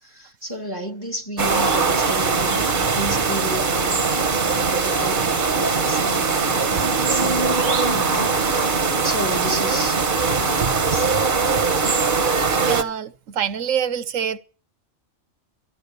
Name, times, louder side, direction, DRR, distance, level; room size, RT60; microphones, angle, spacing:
voice 1, 0.0-8.7 9.0-10.1 10.4-11.1, right 1 dB, 15° left, 1.9 m, -32 dB
sound 1, 1.4-12.8, right 4 dB, 40° right, 1.1 m, -21 dB
voice 2, 12.6-14.4, right 8 dB, 85° right, 1.3 m, -25 dB
13.0 x 11.5 x 6.9 m
omnidirectional pair, 1.3 m